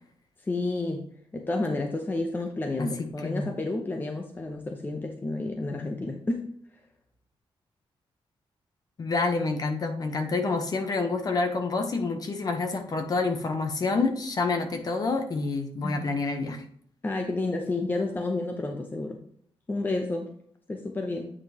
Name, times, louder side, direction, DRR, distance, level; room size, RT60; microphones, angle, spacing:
voice 1, 0.4-6.5 15.8-16.0 17.0-19.2 19.7-20.3 20.7-21.3, left 2 dB, 20° left, 3 dB, 0.7 m, -30 dB
voice 2, 2.8-3.5 9.0-16.6, left 3 dB, 40° left, 6 dB, 1.1 m, -28 dB
8.6 x 5.2 x 3.0 m, 0.63 s
wide cardioid pair, 150°, 10 cm